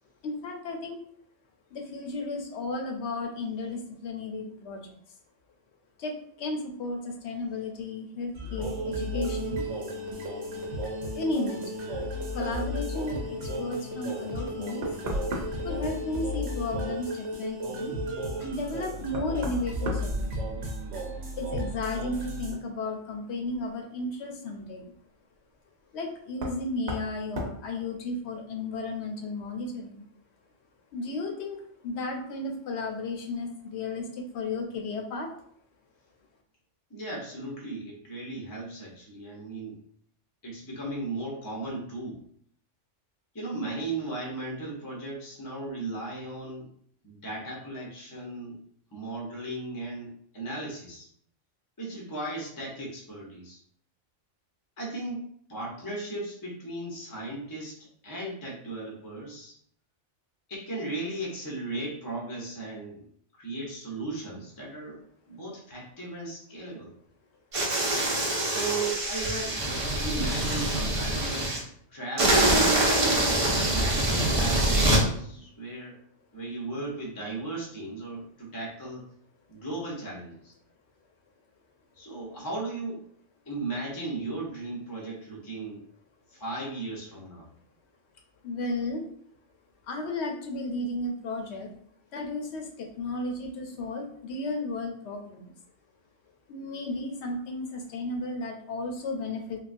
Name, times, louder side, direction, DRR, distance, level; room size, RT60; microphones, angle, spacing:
voice 1, 0.2-1.0 1.7-4.9 6.0-9.6 11.1-12.0 12.3-14.9 15.6-17.9 18.4-20.6 21.4-24.8 25.9-30.0 30.9-35.3 88.4-89.0 89.9-91.7 92.1-95.5 96.5-99.6, left 2 dB, 70° left, 2 dB, 0.9 m, -34 dB
sound 1, 8.3-22.5, equal, 85° right, 1.0 m, -34 dB
Knock, 14.8-15.8 18.2-18.3 19.1-20.9 21.2-21.8 23.5-23.6 26.3-26.6 26.9-27.1 27.4-27.6, right 1 dB, 65° right, 0.8 m, -34 dB
voice 2, 36.9-39.8 40.4-42.2 43.3-46.7 47.0-48.6 48.9-51.1 51.8-53.6 54.8-59.6 60.5-63.1 63.4-66.9 68.4-69.7 70.0-71.5 71.9-76.0 76.3-79.1 79.5-80.5 81.9-83.0 83.5-85.8 86.3-87.5, right 2 dB, 25° left, -2 dB, 0.5 m, -36 dB
sound 2, 67.5-71.6 72.2-75.0, right 1 dB, 40° right, 0.5 m, -24 dB
3.2 x 2.2 x 2.5 m, 0.63 s
omnidirectional pair, 1.3 m